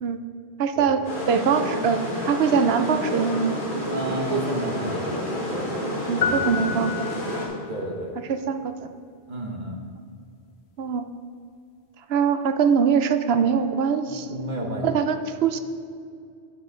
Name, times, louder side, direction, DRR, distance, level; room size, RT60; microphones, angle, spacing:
voice 1, 0.6-1.0 1.3-3.6 6.1-7.5 8.3-8.9 10.0-10.1 10.8-11.1 12.1-14.3 14.8-15.6, right 6 dB, 70° right, 9 dB, 0.9 m, -23 dB
sound 1, 1.0-7.5, left 1 dB, 50° left, 2.3 m, -29 dB
voice 2, 3.9-5.6 6.1-6.4 7.7-8.1 9.3-9.8 14.0-14.9, right 1 dB, 45° right, 1 dB, 1.2 m, -31 dB
sound 2, 6.2-7.7, left 6 dB, 75° left, 1.0 m, -28 dB
9.5 x 8.8 x 3.8 m, 2.3 s
omnidirectional pair, 1.1 m